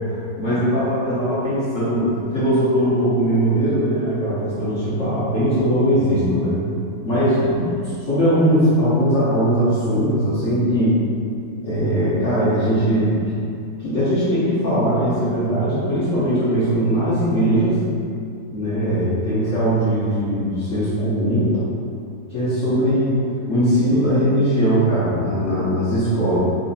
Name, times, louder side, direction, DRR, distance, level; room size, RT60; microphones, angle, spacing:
voice 1, 0.0-6.6 7.0-10.9 11.6-13.1 13.8-17.8 18.5-21.5 22.3-23.2 23.5-26.4, equal, 55° left, -13 dB, 1.2 m, -20 dB
4.0 x 2.7 x 2.6 m, 2.4 s
omnidirectional pair, 1.7 m